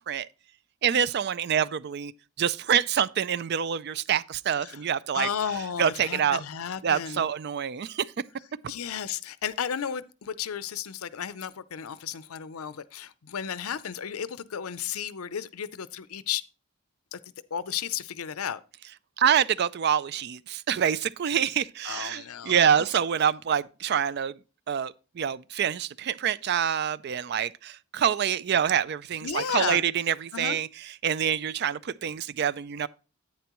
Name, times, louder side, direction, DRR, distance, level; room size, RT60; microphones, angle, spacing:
voice 1, 0.8-2.1 2.4-5.3 5.8-6.4 6.8-8.1 19.2-24.4 24.7-32.9, right 8 dB, 50° right, 0.4 m, -26 dB
voice 2, 5.1-7.3 8.7-16.4 17.1-17.2 17.5-18.6 21.8-22.9 29.2-29.8 30.3-30.6, left 8 dB, 90° left, 0.6 m, -33 dB
10.5 x 8.7 x 3.0 m
head